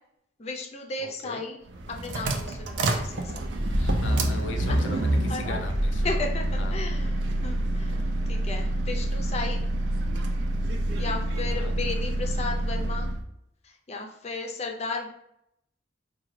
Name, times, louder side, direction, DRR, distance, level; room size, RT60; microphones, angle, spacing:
voice 1, 0.4-1.6 1.9-3.5 4.7-5.6 6.0-9.6 11.0-13.1 13.6-15.1, left 3 dB, 35° left, 2 dB, 0.5 m, -35 dB
voice 2, 1.0-1.4 3.8-6.2 6.6-6.8 11.4-11.8, left 3 dB, 75° left, 4 dB, 0.6 m, -39 dB
sound 1, 1.7-13.2, right 1 dB, 70° right, 0.5 m, -27 dB
4.8 x 2.3 x 3.1 m, 0.76 s
head